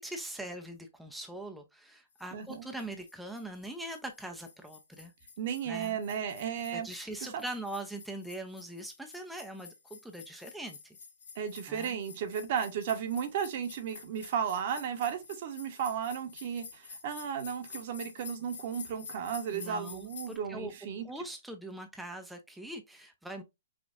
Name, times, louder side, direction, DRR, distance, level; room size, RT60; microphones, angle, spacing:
voice 1, 0.0-5.1 5.7-6.0 6.7-11.0 11.7-12.0 19.5-20.7 21.0-23.4, right 1 dB, 5° right, 0.5 m, -42 dB
sound 1, 2.2-20.4, left 5 dB, 65° left, 1.6 m, -50 dB
voice 2, 2.3-2.6 5.4-6.9 7.3-7.4 11.4-21.1, right 8 dB, 50° right, 0.9 m, -34 dB
5.1 x 2.4 x 2.5 m
hypercardioid pair, 125°, 0 cm